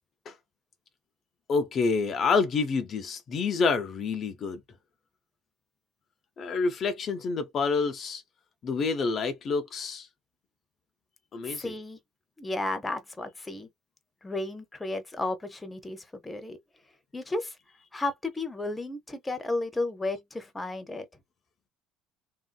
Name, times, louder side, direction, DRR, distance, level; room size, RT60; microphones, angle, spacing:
voice 1, 1.5-4.6 6.4-8.2 8.6-10.1 11.3-11.7, left 4 dB, 45° left, 0.6 m, -28 dB
voice 2, 11.4-12.0 12.4-13.7 14.2-16.6 17.1-17.6 17.9-21.1, left 2 dB, 15° left, 0.8 m, -33 dB
3.0 x 2.6 x 2.2 m
supercardioid pair, 105°, 0 cm